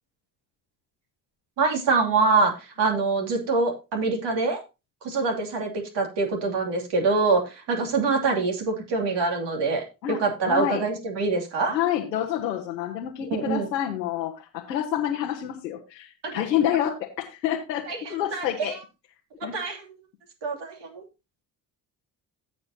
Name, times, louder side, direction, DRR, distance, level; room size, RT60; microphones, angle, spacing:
voice 1, 1.6-4.6 5.0-11.8 13.3-13.7 16.2-16.4 17.9-18.8 19.4-19.8 20.4-21.0, right 4 dB, 60° right, 2 dB, 2.9 m, -25 dB
voice 2, 10.5-10.8 11.7-18.7 19.4-19.5, left 11 dB, 85° left, -1 dB, 1.1 m, -28 dB
16.5 x 5.4 x 2.8 m, 0.27 s
figure-of-eight pair, 45°, 49 cm